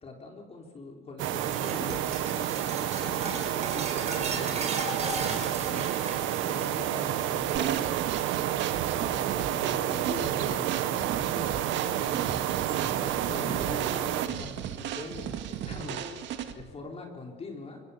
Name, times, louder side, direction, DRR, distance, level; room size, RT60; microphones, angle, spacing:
voice 1, 0.0-4.7 5.6-8.1 9.1-17.8, left 3 dB, 30° left, 1 dB, 3.9 m, -42 dB
sound 1, 1.2-14.3, right 12 dB, 85° right, 1.5 m, -30 dB
sound 2, 1.4-9.9 10.2-10.5 10.9-11.8 13.1-13.2 14.5-14.6, right 3 dB, 35° right, 4.7 m, -38 dB
sound 3, 7.5-16.7, right 9 dB, 70° right, 2.0 m, -36 dB
25.0 x 24.0 x 7.0 m, 1.3 s
cardioid pair, 145°, 19 cm